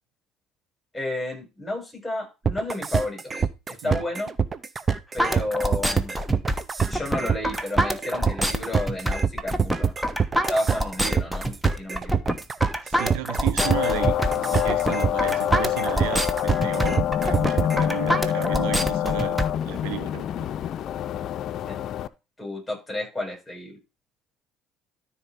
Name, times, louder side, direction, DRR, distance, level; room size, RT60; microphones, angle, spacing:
voice 1, 0.9-4.3 5.1-6.2 6.9-10.1 10.5-11.5 11.8-12.2 21.7-21.8 22.4-23.8, left 1 dB, 10° left, 7.1 m, -31 dB
sound 1, 2.4-17.9, right 6 dB, 30° right, 0.8 m, -25 dB
sound 2, 5.2-19.5, equal, 5° right, 1.2 m, -26 dB
voice 2, 12.8-20.5, right 14 dB, 85° right, 0.8 m, -34 dB
sound 3, 13.6-22.1, left 11 dB, 55° left, 0.6 m, -26 dB
12.5 x 4.5 x 5.4 m
supercardioid pair, 90°, 0 cm